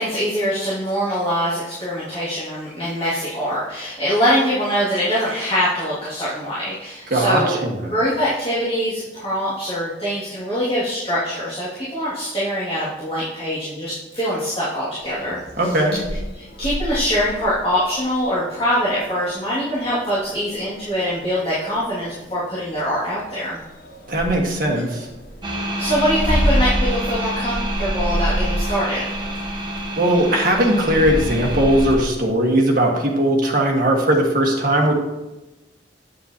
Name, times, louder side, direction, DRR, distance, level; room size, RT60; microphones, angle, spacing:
voice 1, 0.0-7.6 7.9-15.8 16.3-23.6 25.8-29.0, equal, 35° left, -12 dB, 2.3 m, -23 dB
voice 2, 7.1-7.9 15.6-16.0 24.1-25.1 30.0-34.9, right 1 dB, 55° right, 0 dB, 1.6 m, -19 dB
sound 1, 15.0-32.1, equal, 55° left, 1.1 m, -29 dB
sound 2, 25.4-32.0, right 1 dB, 25° right, 1.3 m, -28 dB
9.8 x 7.2 x 2.9 m, 1.1 s
head